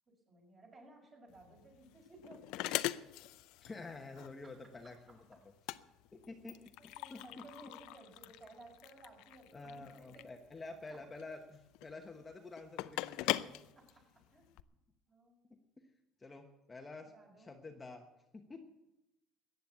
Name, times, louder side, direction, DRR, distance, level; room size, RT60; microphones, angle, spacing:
voice 1, 0.3-2.9 5.1-5.4 6.8-10.3 10.9-11.1 13.7-14.0 14.3-14.5 15.1-15.5 17.0-17.5, right 2 dB, 30° right, 1 dB, 5.7 m, -58 dB
sound 1, 1.3-14.6, left 16 dB, 80° left, 0.5 m, -42 dB
voice 2, 3.6-5.4 6.1-7.4 9.5-13.6 15.5-15.9 16.2-18.1 18.3-18.7, left 3 dB, 20° left, 3 dB, 1.1 m, -50 dB
14.5 x 9.4 x 8.1 m, 0.92 s
cardioid pair, 125°, 0 cm